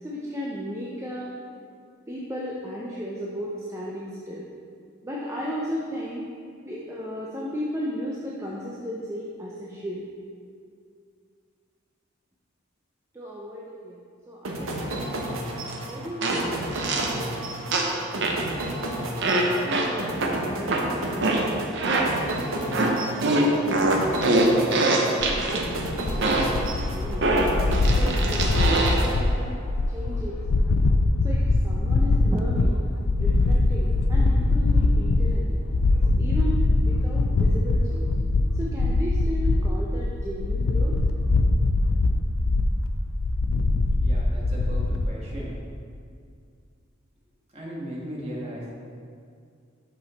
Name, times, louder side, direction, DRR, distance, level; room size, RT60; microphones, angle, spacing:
voice 1, 0.0-1.3 2.1-4.5 5.0-6.3 6.6-10.0 13.1-14.0 14.3-15.3 15.9-17.3 19.5-24.3 24.7-26.5 26.9-27.3 27.9-29.6 29.9-30.6 31.2-32.8 33.1-35.6 36.2-38.1 38.5-40.9, equal, 15° right, -5 dB, 0.5 m, -35 dB
sound 1, 14.4-29.7, right 1 dB, 80° right, 0.9 m, -33 dB
sound 2, 15.7-15.8 16.2-17.2 17.7-18.5 19.2-22.3 22.7-25.6 26.2-26.7 27.2-29.1, right 2 dB, 60° right, 0.7 m, -24 dB
sound 3, 25.2-45.0, left 2 dB, 85° left, 0.4 m, -22 dB
voice 2, 44.0-45.5 47.5-48.8, equal, 30° right, -5 dB, 1.4 m, -37 dB
6.1 x 5.8 x 4.1 m, 2.3 s
head